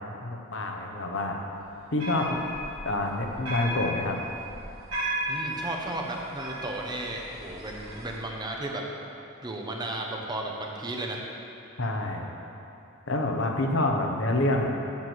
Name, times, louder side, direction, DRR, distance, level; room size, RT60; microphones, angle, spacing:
voice 1, 0.2-1.4 1.9-2.4 2.8-4.2 11.8-12.3 13.1-14.7, left 2 dB, 60° left, 2 dB, 0.9 m, -27 dB
sound 1, 1.6-8.2, right 1 dB, 70° right, 2.1 m, -36 dB
voice 2, 5.3-8.8 9.4-11.2, right 1 dB, 20° right, 0 dB, 0.8 m, -34 dB
7.4 x 6.1 x 7.8 m, 2.7 s
head